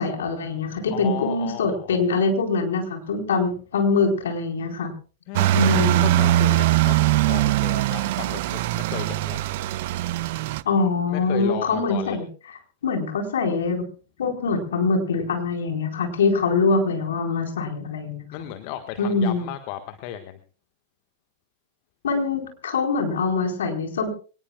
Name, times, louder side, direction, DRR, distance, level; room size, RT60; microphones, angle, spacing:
voice 1, 0.0-4.9 5.5-6.1 10.6-12.2 12.8-13.9 14.2-18.3 19.0-19.5 22.0-24.1, left 4 dB, 70° left, 3 dB, 4.3 m, -23 dB
voice 2, 0.9-2.0 5.3-9.4 11.1-12.2 18.3-20.4, left 12 dB, 50° left, 7 dB, 1.5 m, -35 dB
sound 1, 5.3-10.6, right 15 dB, 55° right, 0.7 m, -21 dB
25.0 x 19.0 x 2.3 m, 0.38 s
figure-of-eight pair, 95°, 0 cm